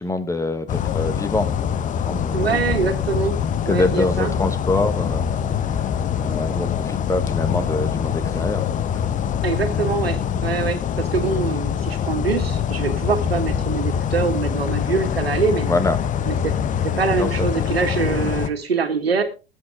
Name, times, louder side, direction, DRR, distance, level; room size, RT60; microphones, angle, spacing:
voice 1, 0.0-1.5 2.1-2.8 3.7-5.3 6.2-8.6 10.3-10.4 15.7-16.0 17.1-17.7, left 2 dB, 10° left, 10 dB, 1.5 m, -25 dB
sound 1, 0.7-18.5, left 8 dB, 25° left, 1.0 m, -24 dB
voice 2, 2.3-3.4 3.7-4.3 9.4-15.7 16.3-16.5 16.8-19.2, right 5 dB, 80° right, 7 dB, 2.1 m, -24 dB
20.0 x 8.6 x 3.6 m, 0.32 s
figure-of-eight pair, 85°, 30 cm